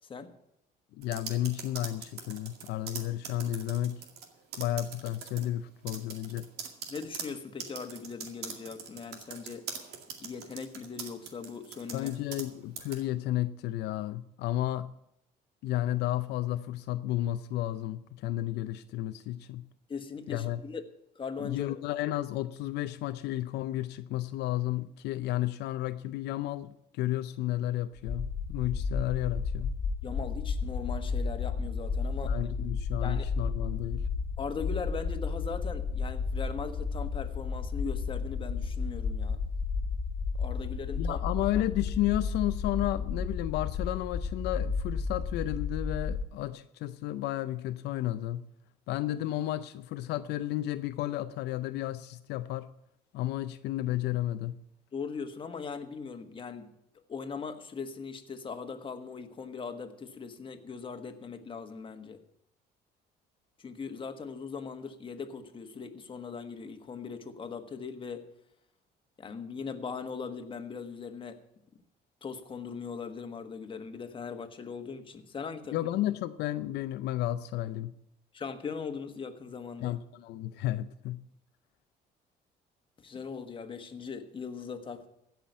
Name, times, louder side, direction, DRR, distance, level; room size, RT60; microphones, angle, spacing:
voice 1, 1.0-4.1 4.6-6.5 11.9-15.0 15.6-19.7 20.3-20.6 21.4-29.8 32.2-34.1 41.0-48.5 48.9-52.7 53.1-54.6 75.7-78.0 79.8-81.3, left 14 dB, 80° left, 0.6 m, -32 dB
sound 1, 1.0-4.3 4.5-5.5 5.9-12.5 12.8-13.0, right 7 dB, 75° right, 2.2 m, -42 dB
voice 2, 6.9-9.7 10.2-12.1 19.9-20.8 21.1-21.7 30.0-32.5 33.0-33.3 34.4-39.4 40.4-41.2 54.9-56.7 57.1-62.2 63.6-68.3 69.2-71.4 72.2-75.9 78.3-80.0 83.0-85.1, left 5 dB, 30° left, 1.5 m, -40 dB
sound 2, 28.0-46.2, left 5 dB, 50° left, 1.5 m, -32 dB
16.0 x 5.9 x 9.2 m
cardioid pair, 110°, 17 cm